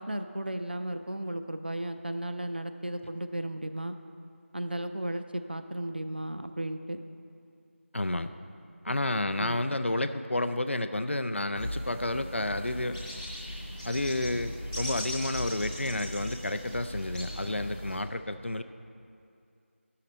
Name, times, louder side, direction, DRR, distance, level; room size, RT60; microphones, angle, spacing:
voice 1, 0.0-4.0 4.5-7.0 9.4-9.6, right 1 dB, 45° right, 8 dB, 0.4 m, -35 dB
voice 2, 7.9-8.3 8.8-13.0 13.8-18.6, left 1 dB, 60° left, 10 dB, 0.4 m, -30 dB
sound 1, 11.5-18.0, left 1 dB, 10° left, 1.0 m, -38 dB
11.0 x 6.6 x 4.2 m, 2.5 s
figure-of-eight pair, 175°, 7 cm